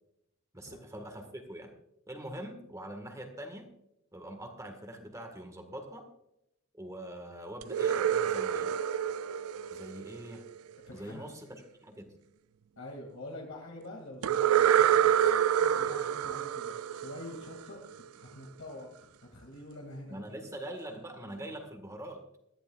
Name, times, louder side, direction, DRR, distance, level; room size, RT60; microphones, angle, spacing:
voice 1, 0.5-1.7 2.1-3.7 4.1-6.1 6.7-8.7 9.7-10.4 10.9-11.5 11.8-12.1 20.1-22.2, right 1 dB, 15° right, 5 dB, 1.7 m, -43 dB
sound 1, 7.6-10.6 14.2-17.9, right 9 dB, 85° right, 0.4 m, -27 dB
voice 2, 10.9-11.3 12.8-17.8 18.1-20.2, left 1 dB, 85° left, -1 dB, 2.6 m, -46 dB
20.5 x 13.5 x 2.5 m, 0.82 s
head